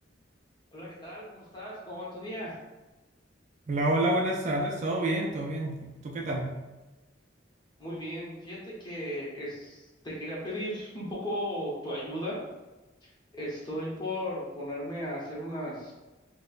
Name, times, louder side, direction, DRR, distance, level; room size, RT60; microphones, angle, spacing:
voice 1, 0.7-2.6 7.8-12.4 13.0-15.9, equal, 25° left, -6 dB, 0.9 m, -36 dB
voice 2, 3.7-6.6, right 1 dB, 40° right, 0 dB, 0.3 m, -28 dB
4.1 x 2.1 x 2.4 m, 1.1 s
head